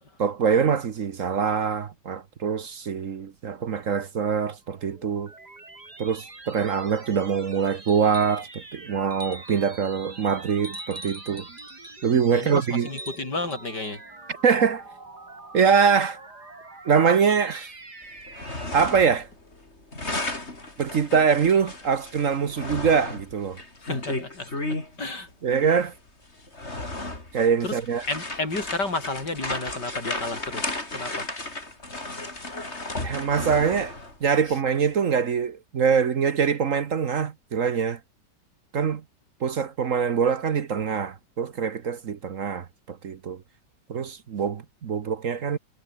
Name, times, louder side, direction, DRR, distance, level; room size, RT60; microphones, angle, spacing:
voice 1, 0.2-5.3 6.0-11.5 12.0-12.9 14.4-14.8 15.5-16.2 16.8-17.7 18.7-19.3 20.8-23.6 25.4-25.9 27.3-28.0 33.0-33.9 34.2-38.0 38.7-39.0 39.4-43.4 43.9-45.6, right 6 dB, 50° right, 1.3 m, -24 dB
sound 1, 4.6-19.3, right 2 dB, 70° right, 6.0 m, -45 dB
sound 2, 7.9-8.5 9.1-9.7 10.6-12.0 12.8-14.0 15.6-15.7, right 1 dB, 20° right, 5.6 m, -42 dB
voice 2, 12.3-14.0 23.8-25.3 27.6-27.8 28.1-31.3, left 2 dB, 75° left, 6.4 m, -32 dB
sound 3, 18.2-19.3 19.5-24.9 25.8-25.9 26.4-34.2, left 2 dB, 40° left, 5.0 m, -34 dB
omnidirectional pair, 1.8 m